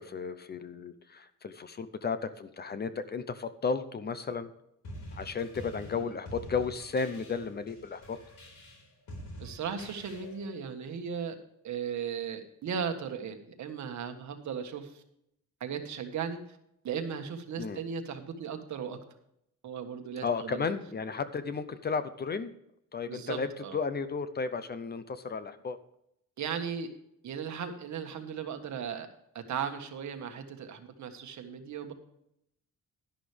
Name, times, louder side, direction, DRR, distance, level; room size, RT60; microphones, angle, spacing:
voice 1, 0.0-4.5 5.2-8.2 17.6-17.8 20.2-22.5 22.9-23.5 23.7-25.8, left 5 dB, 30° left, 12 dB, 0.6 m, -34 dB
sound 1, 4.8-10.5, equal, 75° left, 4.7 m, -46 dB
voice 2, 9.4-11.4 11.6-15.0 15.6-16.6 16.8-19.0 19.6-20.7 23.1-23.8 26.4-26.9 27.2-29.1 29.3-31.9, right 7 dB, 65° right, 6 dB, 1.6 m, -37 dB
11.5 x 11.0 x 3.4 m, 0.77 s
wide cardioid pair, 175°, 31 cm